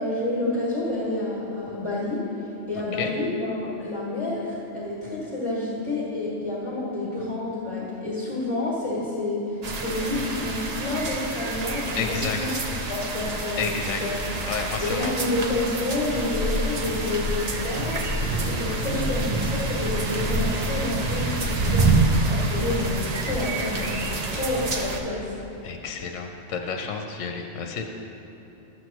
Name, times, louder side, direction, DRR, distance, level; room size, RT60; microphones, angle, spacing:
voice 1, 0.0-12.5 12.9-13.7 14.0-14.1 14.8-18.1 18.4-25.4, left 2 dB, 25° left, -9 dB, 1.7 m, -29 dB
sound 1, 9.6-25.0, right 3 dB, 45° right, 0.5 m, -28 dB
voice 2, 12.0-12.4 13.6-14.0 14.5-15.1 18.8-19.1 25.6-27.8, left 6 dB, 75° left, 4 dB, 1.0 m, -31 dB
sound 2, 16.1-23.5, left 2 dB, 55° left, 1.2 m, -32 dB
12.0 x 7.8 x 3.0 m, 2.9 s
omnidirectional pair, 1.3 m